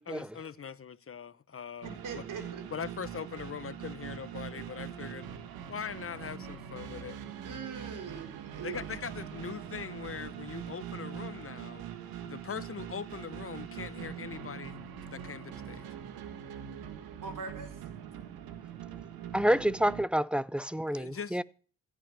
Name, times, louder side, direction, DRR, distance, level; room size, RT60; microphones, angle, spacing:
voice 1, 0.0-2.2 2.7-5.3 5.7-7.2 8.6-11.9 12.2-14.8 15.1-15.8 20.9-21.4, left 7 dB, 40° left, 0.9 m, -41 dB
sound 1, 1.8-20.0, right 9 dB, 90° right, 1.7 m, -43 dB
voice 2, 2.0-2.6 7.4-8.8 17.2-17.9, right 5 dB, 65° right, 4.2 m, -41 dB
voice 3, 19.3-21.4, equal, 5° right, 0.7 m, -28 dB
16.0 x 7.3 x 7.5 m
cardioid pair, 65°, 35 cm